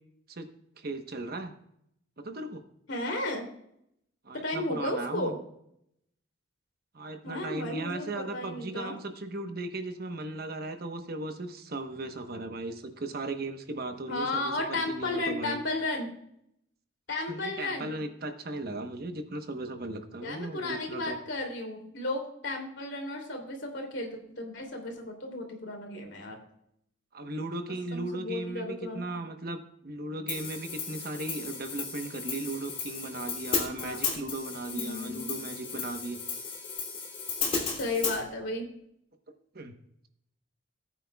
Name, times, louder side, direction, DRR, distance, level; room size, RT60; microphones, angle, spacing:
voice 1, 0.8-1.5 2.2-2.6 4.2-5.3 6.9-15.6 17.3-21.2 27.1-36.2 39.5-39.7, right 2 dB, 50° right, 7 dB, 1.1 m, -37 dB
voice 2, 2.9-3.5 4.3-5.4 7.2-8.9 14.1-16.1 17.1-17.9 20.2-26.4 27.9-29.0 33.8-34.0 34.7-35.3 37.8-38.6, left 2 dB, 65° left, 3 dB, 2.8 m, -34 dB
Hi-hat, 30.3-38.2, left 5 dB, 30° left, 2.9 m, -35 dB
18.5 x 9.0 x 2.3 m, 0.73 s
head